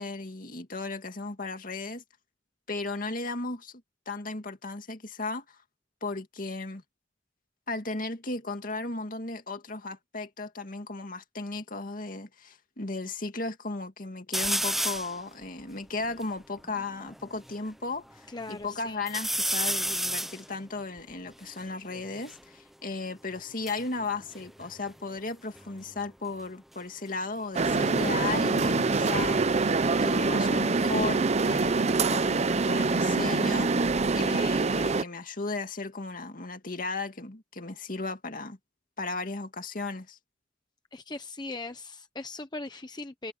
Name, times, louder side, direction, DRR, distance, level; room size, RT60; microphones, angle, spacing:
voice 1, 0.0-2.0 2.7-5.6 6.0-6.8 7.7-33.7 34.1-38.6 39.0-40.2, left 3 dB, 50° left, 2.2 m, -35 dB
sound 1, 14.3-15.2 15.7-15.8 16.0-17.6 18.1-18.7 19.1-22.4 23.4-25.3 25.6-26.0 27.6-30.2 30.6-31.4, right 1 dB, ahead, 0.6 m, -34 dB
voice 2, 18.3-19.0 40.9-43.3, left 2 dB, 25° left, 0.9 m, -39 dB
sound 2, 27.5-35.0, right 3 dB, 40° right, 0.7 m, -25 dB
head